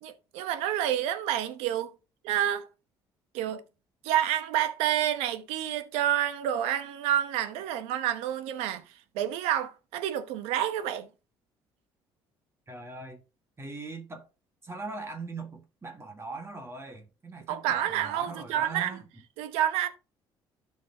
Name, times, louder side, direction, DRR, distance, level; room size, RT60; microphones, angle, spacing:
voice 1, 0.0-1.9 2.2-2.7 3.3-3.6 4.0-8.8 9.1-11.1 17.5-19.0 19.4-19.9, right 11 dB, 80° right, 0.9 m, -28 dB
voice 2, 12.7-13.2 13.6-14.3 14.6-19.0, right 3 dB, 25° right, 1.7 m, -40 dB
12.5 x 4.7 x 2.8 m
supercardioid pair, 70°, 10 cm